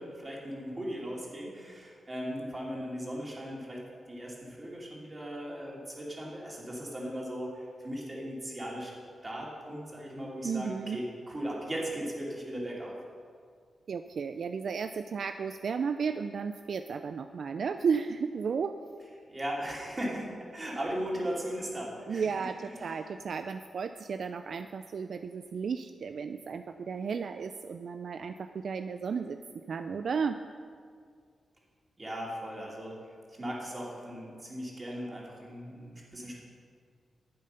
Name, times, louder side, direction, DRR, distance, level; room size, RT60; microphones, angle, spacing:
voice 1, 0.0-8.9 9.2-13.0 19.3-22.3 22.6-23.0 32.0-33.0 33.4-36.3, equal, 25° right, -4 dB, 3.1 m, -38 dB
voice 2, 10.4-11.0 13.9-18.8 22.1-29.4 29.7-30.4, right 6 dB, 65° right, 9 dB, 0.4 m, -33 dB
12.0 x 8.5 x 5.6 m, 2.1 s
cardioid pair, 95°, 0 cm